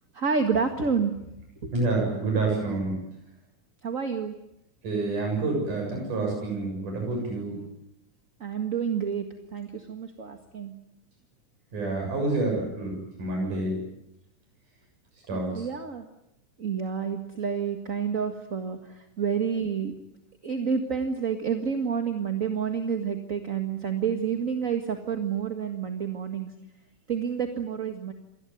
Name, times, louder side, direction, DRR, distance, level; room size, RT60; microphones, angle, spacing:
voice 1, 0.1-1.1 1.6-1.7 3.8-4.3 8.4-10.7 15.3-16.1 16.6-19.9 20.4-26.5 27.1-28.1, right 6 dB, 30° right, 5 dB, 1.7 m, -29 dB
voice 2, 1.7-3.0 4.8-7.6 11.7-13.8 15.3-15.7, right 3 dB, 90° right, 0 dB, 8.8 m, -28 dB
28.0 x 21.0 x 9.3 m, 0.84 s
omnidirectional pair, 3.5 m